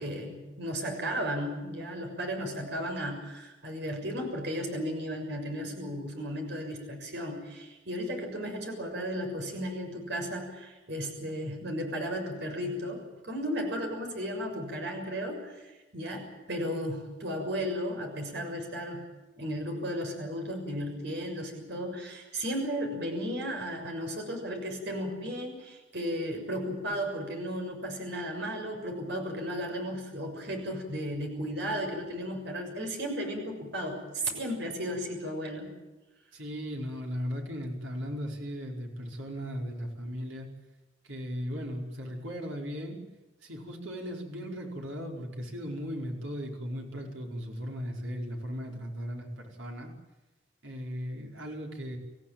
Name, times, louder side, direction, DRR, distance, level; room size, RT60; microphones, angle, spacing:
voice 1, 0.0-19.0 19.4-35.7, equal, 60° right, 3 dB, 6.6 m, -34 dB
voice 2, 36.3-40.5 41.0-43.0 43.4-49.9 50.6-52.0, equal, 80° right, 1 dB, 5.1 m, -37 dB
28.0 x 15.0 x 9.1 m, 1.1 s
head